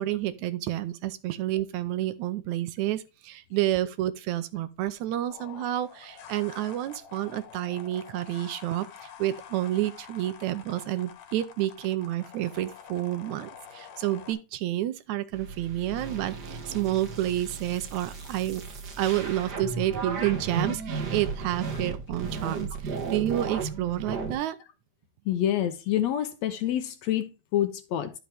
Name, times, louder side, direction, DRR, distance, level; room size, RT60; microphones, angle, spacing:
voice 1, 0.0-8.9 9.2-18.6 19.0-24.6, right 14 dB, 75° right, 1.9 m, -29 dB
sound 1, 5.3-14.3, left 8 dB, 90° left, 2.9 m, -47 dB
sound 2, 15.3-24.3, right 4 dB, 45° right, 1.4 m, -35 dB
voice 2, 25.3-28.1, left 11 dB, 75° left, 1.8 m, -27 dB
11.0 x 6.0 x 3.4 m
omnidirectional pair, 3.5 m